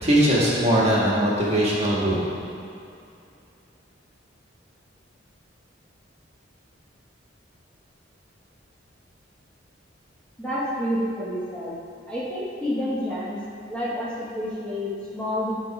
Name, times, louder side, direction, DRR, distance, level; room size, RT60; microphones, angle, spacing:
voice 1, 0.0-2.2, right 1 dB, 35° right, -6 dB, 1.7 m, -20 dB
voice 2, 10.4-11.8 12.1-13.4 13.7-15.5, equal, 5° left, -8 dB, 1.1 m, -29 dB
11.5 x 4.0 x 4.9 m, 2.5 s
head